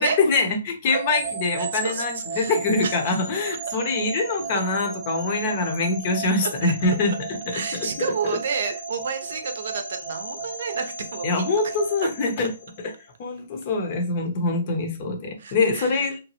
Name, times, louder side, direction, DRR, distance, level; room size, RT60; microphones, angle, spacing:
voice 1, 0.2-7.6 8.2-8.4 11.2-12.5 13.2-16.2, left 3 dB, 40° left, 5 dB, 0.7 m, -24 dB
sound 1, 0.9-13.1, right 4 dB, 20° right, 1.0 m, -35 dB
voice 2, 1.6-2.6 2.8-3.2 3.7-3.8 4.5-4.6 6.4-6.7 7.1-7.2 7.5-11.7 15.4-16.0, right 6 dB, 65° right, 6 dB, 0.6 m, -30 dB
2.9 x 2.2 x 2.8 m, 0.31 s
hypercardioid pair, 145°, 0 cm